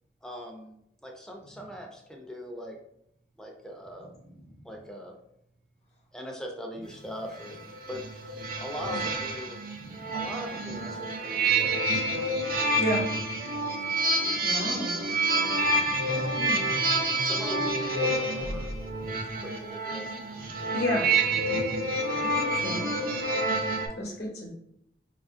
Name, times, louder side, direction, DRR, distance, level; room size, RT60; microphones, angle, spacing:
voice 1, 0.2-0.8 1.0-2.8 3.4-4.1 4.6-5.2 6.1-9.6 10.1-12.2 16.1-16.3 17.2-18.7 19.4-20.2, equal, 5° left, 0.5 m, -41 dB
voice 2, 4.0-4.7 5.9-6.0 6.8-6.9 7.3-7.5 9.0-9.1 9.7-10.5 11.6-12.0 14.4-14.7 15.3-16.4 18.4-18.5 18.9-19.3 20.4-20.5 21.5-22.1, equal, 35° left, 0.8 m, -51 dB
sound 1, 7.3-23.9, right 2 dB, 50° right, 0.6 m, -28 dB
voice 3, 14.4-15.0 16.4-16.7 20.7-21.0 22.2-22.9 24.0-24.5, equal, 60° left, 0.9 m, -31 dB
4.7 x 2.5 x 2.5 m
head